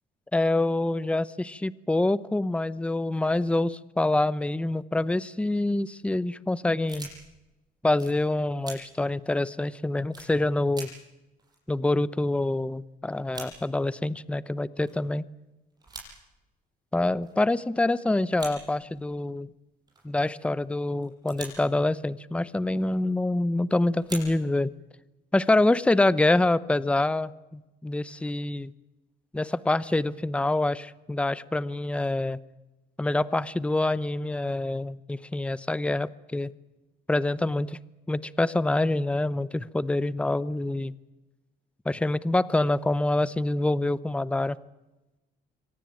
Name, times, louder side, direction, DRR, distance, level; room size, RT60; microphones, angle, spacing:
voice 1, 0.3-7.1 7.8-10.9 11.7-15.2 16.9-19.5 20.0-24.7 25.3-28.7 29.3-32.4 33.0-36.5 37.1-37.8 38.1-40.9 41.9-44.6, left 2 dB, 5° left, 17 dB, 0.8 m, -26 dB
sound 1, 5.9-6.1 6.9-7.5 8.0-8.2 8.6-8.8 9.3-9.4 10.1-10.3 10.7-10.9 11.1-11.2 11.4-12.5 12.7-12.8 13.1-13.5 14.3-14.4 14.8-15.1 15.7-16.1 17.2-17.5 18.3-18.5 18.8-19.4 19.9-20.2 21.0-21.7 22.8-23.0 23.9-24.7, right 3 dB, 25° right, 7.9 m, -43 dB
25.0 x 18.0 x 8.9 m, 1.0 s
cardioid pair, 110°, 17 cm